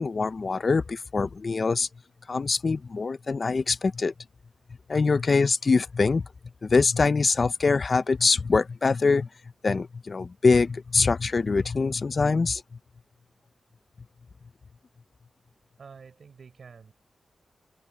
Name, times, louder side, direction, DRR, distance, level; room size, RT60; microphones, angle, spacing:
voice 1, 0.0-1.9 2.3-4.1 4.9-6.3 6.6-9.3 9.6-12.6, left 4 dB, 45° left, 0.6 m, -24 dB
voice 2, 15.8-16.9, right 5 dB, 65° right, 5.6 m, -48 dB
wide cardioid pair, 125°, 0 cm